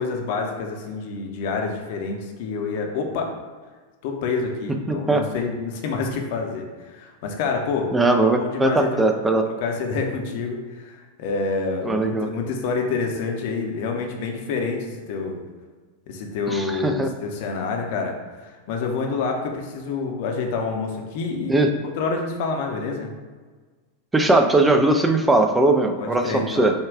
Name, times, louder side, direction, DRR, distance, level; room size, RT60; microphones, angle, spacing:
voice 1, 0.0-3.3 4.0-7.9 8.4-9.0 9.6-15.4 16.1-18.1 18.4-21.6 21.8-23.1 26.0-26.7, left 4 dB, 50° left, 2 dB, 0.7 m, -27 dB
voice 2, 4.9-5.2 7.9-9.4 11.8-12.3 16.5-17.1 21.5-21.7 24.1-26.7, right 2 dB, 10° right, 4 dB, 0.4 m, -19 dB
5.3 x 2.3 x 3.5 m, 1.4 s
figure-of-eight pair, 90°, 0 cm